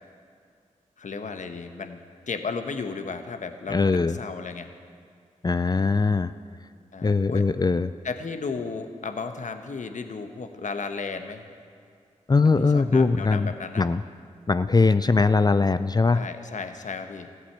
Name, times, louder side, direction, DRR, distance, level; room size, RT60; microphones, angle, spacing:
voice 1, 1.0-2.0 2.3-4.7 6.9-7.4 8.0-11.5 12.6-13.8 16.1-17.3, left 4 dB, 65° left, 7 dB, 1.1 m, -34 dB
voice 2, 3.7-4.2 5.4-6.3 7.0-7.9 12.3-13.5 13.8-14.0 14.5-16.3, left 4 dB, 30° left, 12 dB, 0.5 m, -21 dB
14.5 x 8.0 x 9.2 m, 2.2 s
cardioid pair, 40°, 14 cm